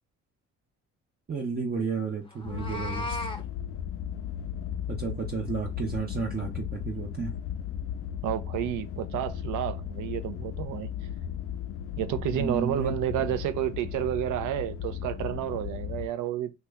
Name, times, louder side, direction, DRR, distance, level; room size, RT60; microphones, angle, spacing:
voice 1, 1.3-3.3 4.9-7.3 12.3-12.9, right 5 dB, 30° right, 0.7 m, -32 dB
Meow, 2.3-3.4, left 1 dB, 20° left, 0.7 m, -35 dB
sound 1, 2.4-16.1, left 9 dB, 45° left, 0.4 m, -36 dB
voice 2, 8.2-10.9 12.0-16.5, right 12 dB, 80° right, 0.5 m, -30 dB
2.9 x 2.2 x 3.4 m
cardioid pair, 90°, 30 cm